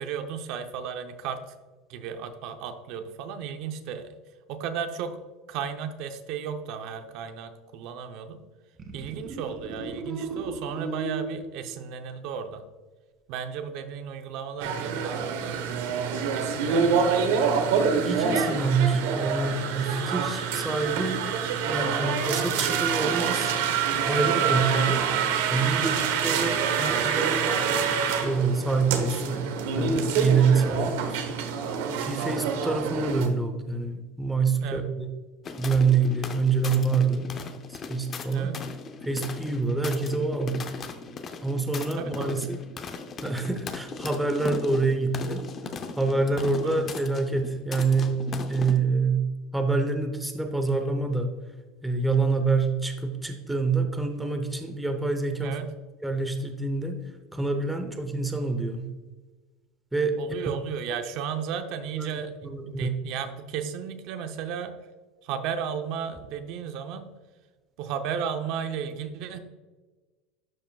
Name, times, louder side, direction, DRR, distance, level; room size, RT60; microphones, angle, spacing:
voice 1, 0.0-1.6 1.9-4.1 4.5-5.2 5.5-8.4 8.9-12.6 13.3-15.6 16.3-17.5 22.0-22.2 25.8-26.0 30.6-30.8 34.6-34.9 37.3-37.5 38.3-38.6 42.0-42.4 46.6-46.8 55.4-55.7 60.2-64.7 65.2-67.1 67.8-69.4, right 7 dB, 60° right, 8 dB, 0.7 m, -34 dB
sound 1, 8.8-11.5 14.9-15.7, right 3 dB, 30° right, 1.7 m, -36 dB
sound 2, 14.6-33.3, right 6 dB, 85° right, 1.0 m, -26 dB
voice 2, 17.9-21.3 21.7-23.5 23.9-25.0 25.5-27.7 28.2-29.4 29.7-31.2 32.0-35.1 35.6-37.3 37.7-38.5 39.1-40.7 41.4-42.6 43.2-45.5 46.0-51.3 51.8-55.6 56.0-57.0 57.3-58.9 59.9-60.2 60.9-61.0 62.0-62.1 62.4-63.0, right 4 dB, 5° right, 5 dB, 0.7 m, -26 dB
sound 3, 35.5-48.8, left 5 dB, 30° left, 0.6 m, -38 dB
11.5 x 5.1 x 2.3 m, 1.3 s
supercardioid pair, 145°, 0 cm